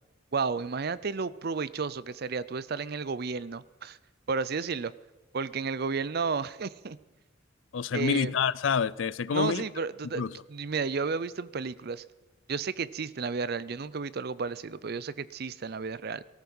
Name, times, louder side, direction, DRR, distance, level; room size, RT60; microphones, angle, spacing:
voice 1, 0.3-4.0 4.3-4.9 5.3-7.0 7.9-8.3 9.3-12.0 12.5-16.2, right 5 dB, 50° right, 0.5 m, -32 dB
voice 2, 7.7-9.6 10.2-10.4, left 6 dB, 70° left, 0.5 m, -27 dB
18.5 x 14.0 x 5.5 m
head